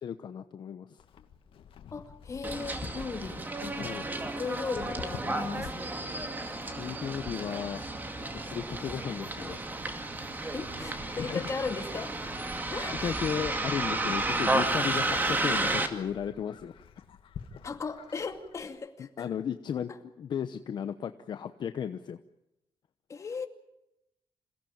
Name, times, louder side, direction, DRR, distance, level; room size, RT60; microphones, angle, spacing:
voice 1, 0.0-1.0 3.8-4.1 6.8-7.9 8.2-9.6 11.2-11.5 13.0-16.9 19.2-19.9 20.2-22.2, left 8 dB, 55° left, 9 dB, 0.9 m, -35 dB
Livestock farm animals working animals, 1.0-18.7, left 7 dB, 85° left, 2.0 m, -51 dB
voice 2, 1.9-3.9 4.2-6.0 10.5-12.3 12.7-13.1 17.6-19.3 23.1-23.5, left 5 dB, 35° left, 5 dB, 2.4 m, -37 dB
Bus, 2.4-15.9, right 2 dB, 20° right, 2.3 m, -32 dB
27.5 x 17.0 x 8.9 m, 0.90 s
wide cardioid pair, 170°, 9 cm